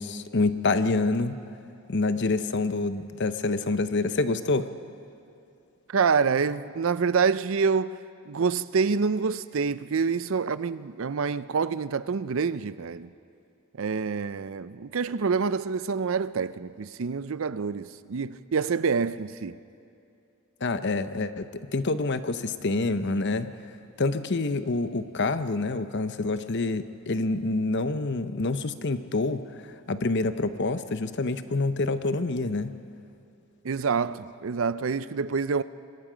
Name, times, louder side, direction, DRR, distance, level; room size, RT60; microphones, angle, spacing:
voice 1, 0.0-1.4 1.9-4.7 20.6-23.5 24.0-32.7, left 3 dB, 55° left, 0.8 m, -27 dB
voice 2, 5.9-8.0 8.3-13.1 13.8-19.6 33.6-35.6, right 5 dB, 65° right, 0.5 m, -27 dB
26.0 x 22.0 x 5.1 m
head